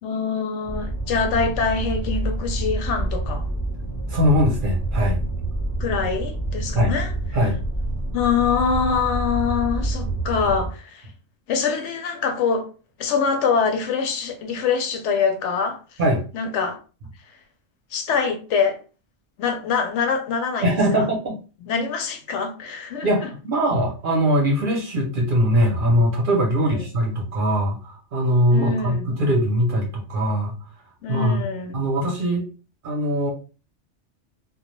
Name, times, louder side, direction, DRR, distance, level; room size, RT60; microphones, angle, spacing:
voice 1, 0.0-3.5 5.8-7.1 8.1-11.1 11.5-12.7 13.0-16.0 16.3-16.8 17.9-18.8 19.4-21.1 21.6-23.3 26.7-26.8 28.5-29.1 31.0-31.8, left 5 dB, 75° left, 0.9 m, -24 dB
sound 1, 0.6-10.7, right 2 dB, 20° left, 0.7 m, -27 dB
voice 2, 4.1-5.2 6.8-7.0 7.3-7.6 16.0-16.2 20.6-21.4 23.0-30.6 31.1-31.4 31.7-32.4 32.8-33.3, equal, 55° right, 0.7 m, -21 dB
2.2 x 2.1 x 3.0 m
omnidirectional pair, 1.2 m